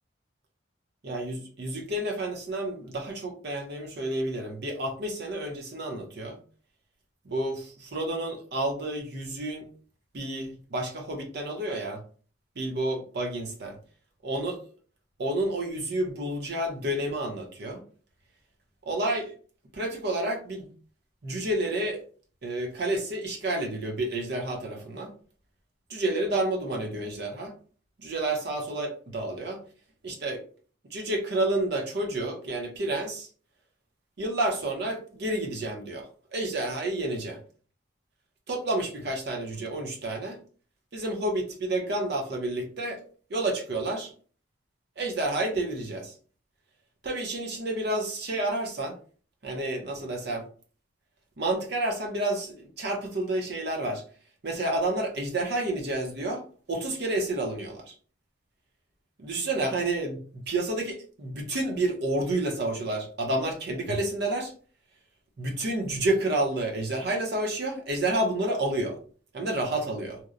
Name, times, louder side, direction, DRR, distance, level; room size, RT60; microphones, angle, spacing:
voice 1, 1.0-6.4 7.3-9.7 10.1-12.0 12.6-13.7 14.2-14.6 15.2-17.8 18.9-19.3 19.7-20.7 21.2-22.0 22.4-25.1 25.9-27.5 28.0-29.6 30.0-30.4 30.9-33.3 34.2-36.1 36.3-37.4 38.5-40.4 40.9-43.0 43.3-44.1 45.0-46.1 47.0-48.9 49.4-50.5 51.4-54.0 54.4-56.4 56.7-57.9 59.2-64.5 65.4-69.0 69.3-70.2, right 1 dB, 60° right, 2 dB, 0.6 m, -30 dB
2.8 x 2.0 x 2.4 m, 0.42 s
head